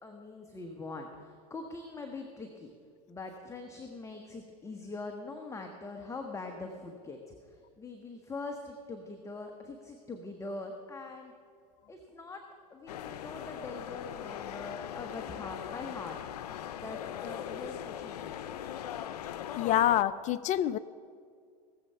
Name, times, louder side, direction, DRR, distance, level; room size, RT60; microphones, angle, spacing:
voice 1, 0.0-2.7 3.1-11.3 11.9-16.2 16.7-18.6, left 3 dB, 15° left, 3 dB, 1.1 m, -43 dB
Carrousel du Louvre, 12.9-20.0, left 10 dB, 90° left, 0.5 m, -40 dB
voice 2, 19.6-20.8, left 12 dB, 40° left, 16 dB, 0.4 m, -26 dB
18.0 x 7.7 x 5.6 m, 2.2 s
hypercardioid pair, 105°, 20 cm